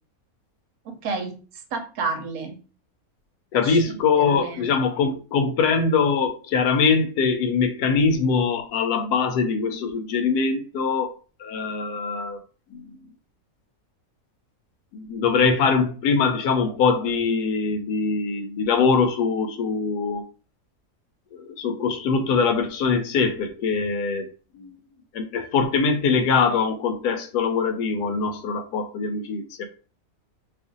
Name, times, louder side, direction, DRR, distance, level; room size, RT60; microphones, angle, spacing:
voice 1, 0.8-2.5 3.6-3.8 4.1-4.7, right 4 dB, 70° right, 1.1 m, -31 dB
voice 2, 3.5-11.1 11.4-12.4 12.7-12.9 14.9-20.2 21.3-24.3 24.5-24.8 25.1-29.6, left 5 dB, 85° left, 1.2 m, -23 dB
2.8 x 2.5 x 3.7 m
omnidirectional pair, 1.6 m